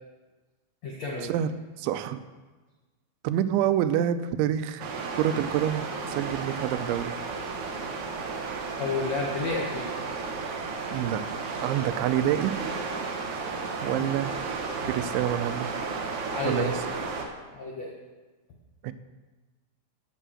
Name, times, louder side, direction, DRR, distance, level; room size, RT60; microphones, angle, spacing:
voice 1, 0.8-1.3 8.8-9.9 13.8-14.1 16.3-16.7 17.5-17.9, left 3 dB, 75° left, -1 dB, 1.5 m, -31 dB
voice 2, 1.8-2.2 3.2-7.1 10.9-11.2 11.6-12.5 13.8-14.3 14.8-15.7 16.5-16.7 18.8-18.9, right 11 dB, 90° right, 11 dB, 3.0 m, -27 dB
sound 1, 4.8-17.2, right 4 dB, 65° right, 1.9 m, -33 dB
10.0 x 8.5 x 7.5 m, 1.3 s
omnidirectional pair, 5.3 m